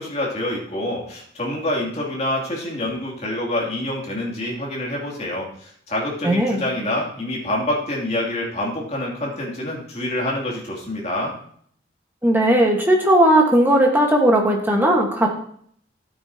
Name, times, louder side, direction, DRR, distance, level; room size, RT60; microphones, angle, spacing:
voice 1, 0.0-5.5 5.9-11.3, left 1 dB, 35° left, -3 dB, 2.8 m, -26 dB
voice 2, 6.2-6.6 12.2-15.3, right 1 dB, 10° right, 0 dB, 1.4 m, -17 dB
13.0 x 8.8 x 2.9 m, 0.62 s
head